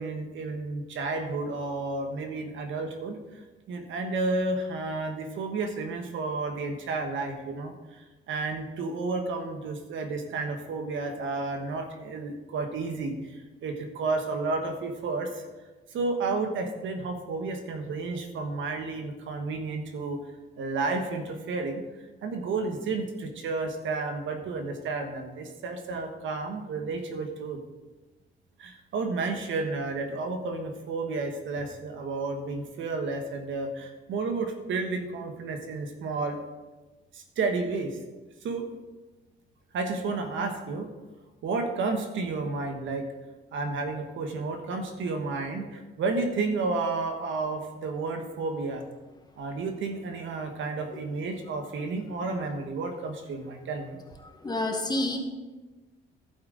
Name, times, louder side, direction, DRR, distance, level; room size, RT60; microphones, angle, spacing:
voice 1, 0.0-3.4 3.7-15.4 15.9-20.2 20.6-27.6 28.6-36.4 37.1-38.0 38.4-38.7 39.7-40.9 41.4-43.1 43.5-48.8 49.4-54.0, right 3 dB, 75° right, 5 dB, 1.4 m, -31 dB
voice 2, 54.4-55.2, left 1 dB, 20° left, 3 dB, 1.6 m, -28 dB
11.5 x 8.7 x 4.0 m, 1.2 s
cardioid pair, 90°, 20 cm